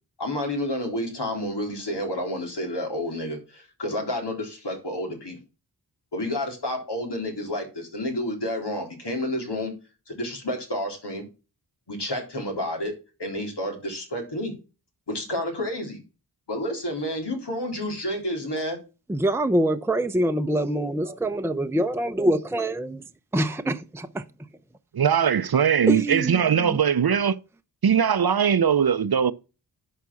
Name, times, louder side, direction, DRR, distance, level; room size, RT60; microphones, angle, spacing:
voice 1, 0.2-5.4 6.1-9.7 10.1-11.2 11.9-14.5 15.1-16.0 16.5-18.8 21.0-21.1, left 1 dB, 85° left, 3.7 m, -30 dB
voice 2, 19.1-23.1 23.3-24.3 25.9-26.8, right 1 dB, 5° right, 0.7 m, -25 dB
voice 3, 24.9-27.4 27.8-29.3, right 7 dB, 65° right, 0.7 m, -20 dB
11.0 x 5.1 x 7.0 m
wide cardioid pair, 75°, 40 cm